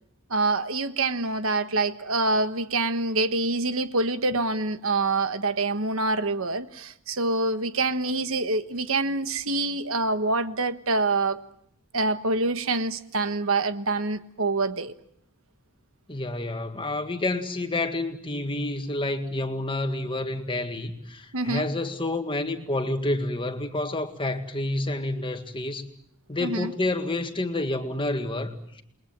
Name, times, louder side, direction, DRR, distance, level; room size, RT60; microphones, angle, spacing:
voice 1, 0.3-11.4 11.9-14.9 21.3-21.7 26.4-26.7, right 3 dB, 60° right, 1.3 m, -26 dB
voice 2, 16.1-25.9 26.3-28.8, left 2 dB, 25° left, 1.9 m, -29 dB
29.5 x 21.5 x 7.5 m
head